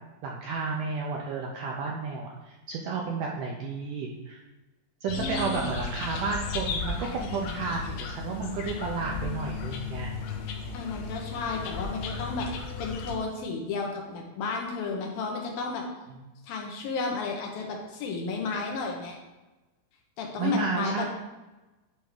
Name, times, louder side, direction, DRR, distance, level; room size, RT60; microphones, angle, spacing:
voice 1, 0.2-4.4 5.0-10.1 16.1-16.3 20.4-21.1, right 4 dB, 80° right, -1 dB, 1.9 m, -32 dB
sound 1, 5.1-13.2, left 5 dB, 90° left, 2.6 m, -35 dB
voice 2, 5.2-5.8 10.7-12.5 12.8-15.8 16.4-19.2 20.2-21.1, left 4 dB, 75° left, 0 dB, 2.7 m, -32 dB
10.0 x 3.5 x 4.8 m, 1.1 s
omnidirectional pair, 4.4 m